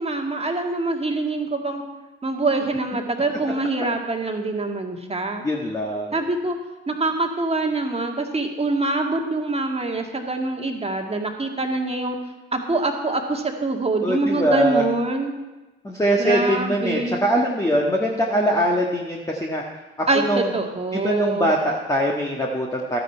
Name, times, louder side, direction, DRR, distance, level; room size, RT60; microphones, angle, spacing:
voice 1, 0.0-1.8 2.2-5.4 6.1-6.6 6.9-12.2 12.5-15.3 16.2-17.3 20.1-21.5, right 2 dB, 20° right, 3 dB, 1.9 m, -24 dB
voice 2, 5.4-6.1 14.0-14.9 15.8-19.6 20.0-20.5 20.9-23.0, equal, 10° left, -1 dB, 1.5 m, -22 dB
13.0 x 9.5 x 4.5 m, 1.1 s
hypercardioid pair, 65°, 33 cm